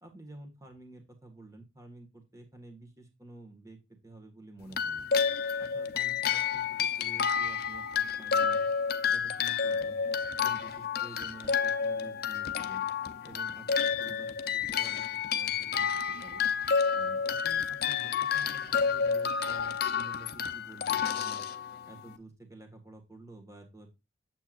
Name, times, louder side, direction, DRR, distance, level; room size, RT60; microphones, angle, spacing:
voice 1, 0.0-3.8 4.0-5.1 5.6-8.7 9.1-10.0 10.4-12.9 13.2-15.0 15.3-16.5 16.9-21.4 21.9-24.0, right 2 dB, 15° right, 4 dB, 1.7 m, -50 dB
sound 1, 4.7-22.1, left 6 dB, 50° left, 0.7 m, -30 dB
8.9 x 7.6 x 2.5 m, 0.23 s
head